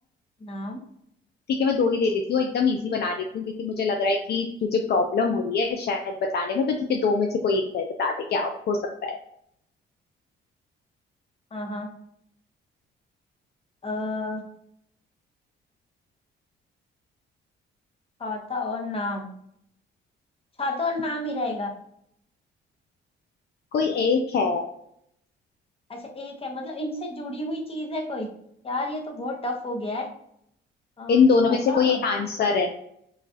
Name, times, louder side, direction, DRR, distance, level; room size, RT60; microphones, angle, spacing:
voice 1, 0.4-0.8 11.5-11.9 13.8-14.4 18.2-19.3 20.6-21.7 25.9-28.3 28.6-30.1 31.0-32.1, left 2 dB, 30° left, 2 dB, 0.8 m, -31 dB
voice 2, 1.6-9.2 23.7-24.7 31.1-32.7, left 4 dB, 55° left, 3 dB, 0.4 m, -23 dB
3.1 x 2.3 x 2.6 m, 0.72 s
cardioid pair, 90°, 20 cm